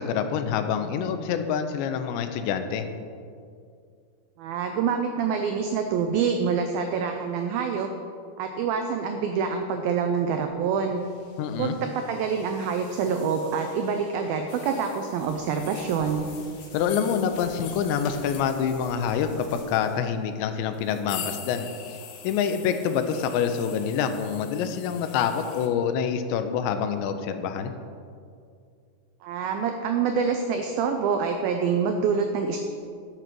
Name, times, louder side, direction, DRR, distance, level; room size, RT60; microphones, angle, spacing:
voice 1, 0.0-2.8 11.4-11.8 16.7-21.7 22.2-27.7, left 7 dB, 85° left, 8 dB, 3.0 m, -26 dB
voice 2, 4.4-7.9 8.4-11.0 11.6-16.2 29.2-32.6, right 6 dB, 85° right, 5 dB, 2.1 m, -26 dB
sound 1, 9.7-20.1, left 3 dB, 50° left, 2.3 m, -50 dB
sound 2, 14.5-25.7, left 8 dB, 70° left, 2.5 m, -43 dB
12.0 x 7.3 x 6.1 m, 2.3 s
omnidirectional pair, 5.0 m